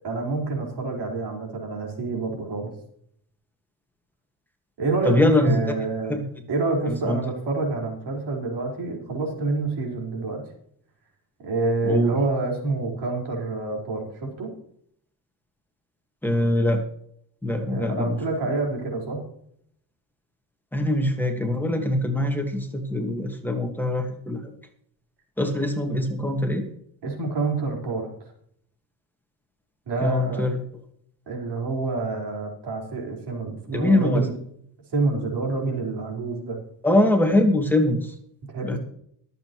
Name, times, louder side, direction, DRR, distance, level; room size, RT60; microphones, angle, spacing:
voice 1, 0.0-2.7 4.8-6.2 6.5-10.4 11.4-14.5 17.7-19.2 27.0-28.1 29.9-30.5 31.3-34.3 34.9-36.6 38.5-38.8, right 3 dB, 85° right, 0 dB, 4.7 m, -27 dB
voice 2, 5.0-5.7 6.1-6.2 6.9-7.2 11.8-12.1 16.2-16.8 17.4-18.2 20.7-24.4 25.4-26.7 30.0-30.6 33.7-34.2 36.8-38.1 38.6-38.8, left 1 dB, 5° left, 3 dB, 1.7 m, -23 dB
22.5 x 7.9 x 3.1 m, 0.68 s
cardioid pair, 150°, 39 cm